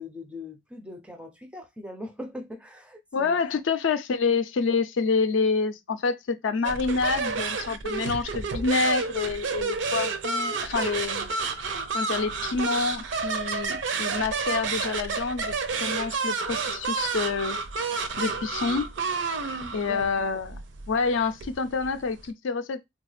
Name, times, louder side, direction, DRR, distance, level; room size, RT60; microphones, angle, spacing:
voice 1, 0.0-3.4 19.7-20.1, left 1 dB, 5° right, 0.4 m, -41 dB
voice 2, 3.1-11.3 11.9-17.6 18.2-18.9 19.7-20.6 20.9-22.8, left 4 dB, 70° left, 0.4 m, -27 dB
sound 1, 6.6-22.3, right 4 dB, 60° right, 0.5 m, -30 dB
3.8 x 2.3 x 3.1 m
head